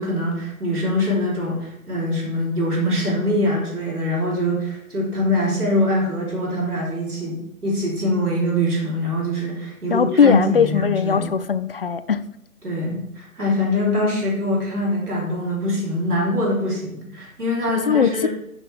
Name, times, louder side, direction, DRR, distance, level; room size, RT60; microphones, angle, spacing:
voice 1, 0.0-11.3 12.6-18.3, left 1 dB, 85° right, -4 dB, 3.4 m, -23 dB
voice 2, 9.9-12.2 17.8-18.3, left 6 dB, 45° left, 13 dB, 0.4 m, -19 dB
12.0 x 5.8 x 3.3 m, 0.82 s
figure-of-eight pair, 140°, 44 cm